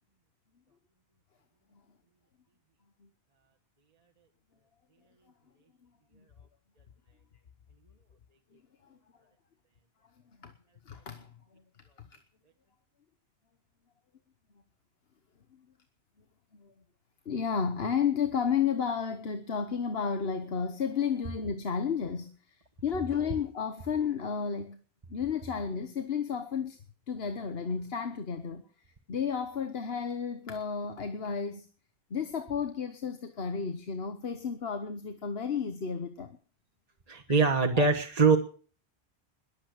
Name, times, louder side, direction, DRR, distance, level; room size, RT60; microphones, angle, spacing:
voice 1, 10.9-11.3 12.0-12.1 16.5-16.7 17.2-22.3 22.8-24.8 25.1-26.8 27.1-28.6 29.1-31.7 32.1-36.4 37.3-37.4 37.7-37.9, left 6 dB, 70° left, 8 dB, 1.4 m, -32 dB
voice 2, 37.1-38.4, right 4 dB, 35° right, 1 dB, 1.4 m, -23 dB
21.5 x 8.8 x 6.4 m, 0.42 s
omnidirectional pair, 1.1 m